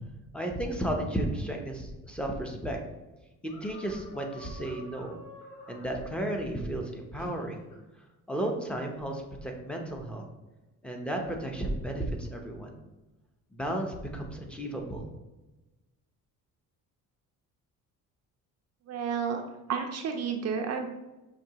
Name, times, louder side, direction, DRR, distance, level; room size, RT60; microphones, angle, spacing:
voice 1, 0.3-2.8 3.4-5.1 5.7-7.6 8.3-10.2 10.8-12.7 13.5-15.1, right 1 dB, 5° left, 1 dB, 0.7 m, -33 dB
sound 1, 3.4-6.0 7.2-7.8 8.4-8.6, left 1 dB, 65° left, 1.1 m, -48 dB
voice 2, 18.9-19.4 19.7-20.9, right 6 dB, 50° right, 4 dB, 0.5 m, -31 dB
5.9 x 2.9 x 2.8 m, 1.1 s
cardioid pair, 110°, 34 cm